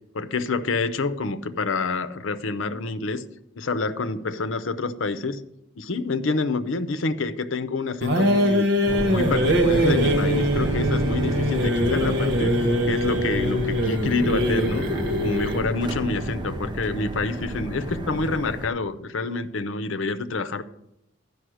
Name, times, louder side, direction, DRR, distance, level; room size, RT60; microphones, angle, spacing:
voice 1, 0.1-3.2 3.6-5.4 5.8-8.7 9.1-12.5 12.8-14.9 15.2-20.6, left 3 dB, 85° left, 12 dB, 0.7 m, -27 dB
sound 1, 8.0-15.7, equal, 60° right, 1.3 m, -23 dB
sound 2, 8.9-18.7, right 1 dB, 25° right, 0.7 m, -30 dB
12.5 x 5.3 x 6.3 m, 0.84 s
head